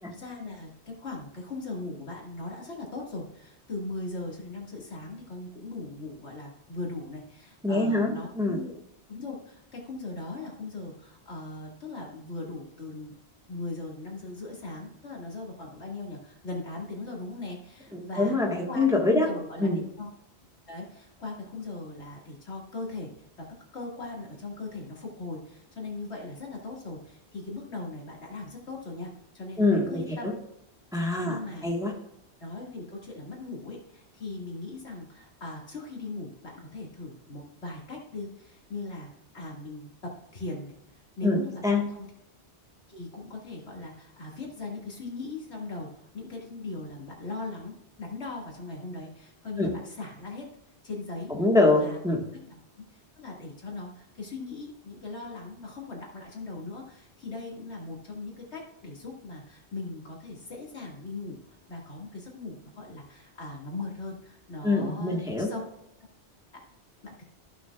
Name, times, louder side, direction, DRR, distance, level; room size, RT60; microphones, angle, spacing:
voice 1, 0.1-8.8 9.1-13.2 13.5-18.4 18.7-20.1 20.7-23.1 23.4-23.5 23.7-29.1 29.3-30.3 31.3-31.7 32.4-40.7 41.2-42.1 42.9-50.5 50.8-51.3 51.7-52.3 52.9-65.6 66.5-66.6 67.0-67.2, left 3 dB, 80° left, -2 dB, 2.4 m, -39 dB
voice 2, 7.6-8.6 17.9-19.3 19.6-19.8 29.6-30.3 30.9-31.9 41.2-41.9 49.6-49.8 51.3-52.2 64.6-65.5, left 2 dB, 5° right, -1 dB, 1.4 m, -25 dB
15.0 x 6.1 x 2.4 m, 0.80 s
omnidirectional pair, 1.1 m